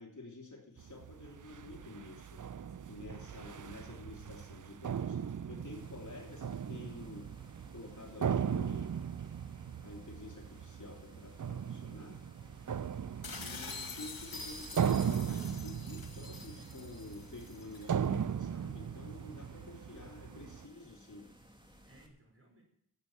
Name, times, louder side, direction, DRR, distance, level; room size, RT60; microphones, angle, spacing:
voice 1, 0.0-2.4 2.9-5.2 5.5-7.3 7.7-8.9 9.8-12.2 13.4-21.3, left 2 dB, 55° left, 2 dB, 2.9 m, -50 dB
sound 1, 0.8-20.7, right 8 dB, 60° right, 0.6 m, -38 dB
voice 2, 2.7-3.5 16.3-16.9 19.2-19.6 21.8-22.6, right 3 dB, 40° right, 0 dB, 5.6 m, -61 dB
sound 2, 5.8-22.1, right 1 dB, 15° right, 2.4 m, -60 dB
sound 3, 13.2-17.9, left 4 dB, 85° left, 2.0 m, -46 dB
14.5 x 7.8 x 7.2 m, 0.73 s
wide cardioid pair, 55°, 35 cm